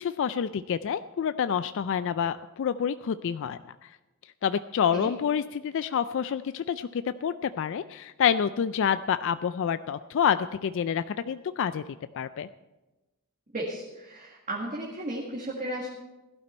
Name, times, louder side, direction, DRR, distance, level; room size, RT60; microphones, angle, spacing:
voice 1, 0.0-3.9 4.4-11.8 12.1-12.5, left 7 dB, 60° left, 13 dB, 0.3 m, -28 dB
voice 2, 13.5-15.9, right 1 dB, 35° right, -4 dB, 1.9 m, -34 dB
16.5 x 12.0 x 4.4 m, 1.1 s
head